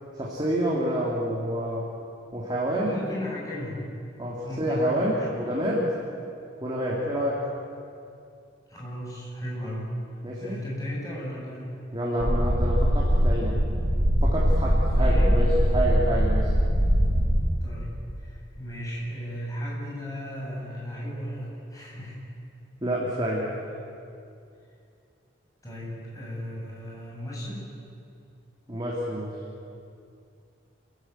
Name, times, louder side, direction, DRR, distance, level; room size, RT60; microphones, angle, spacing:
voice 1, 0.1-1.8 2.3-3.0 4.2-5.9 6.6-7.5 10.2-10.6 11.9-13.6 14.2-16.5 22.8-23.5 28.7-29.4, equal, 25° right, -5 dB, 3.2 m, -28 dB
voice 2, 2.8-3.8 4.4-5.4 8.7-9.9 10.4-11.8 14.9-15.4 17.6-22.2 25.6-27.7, equal, 20° left, -5 dB, 7.8 m, -36 dB
sound 1, 12.2-17.4, equal, 80° right, 6.7 m, -22 dB
28.0 x 15.5 x 9.7 m, 2.5 s
head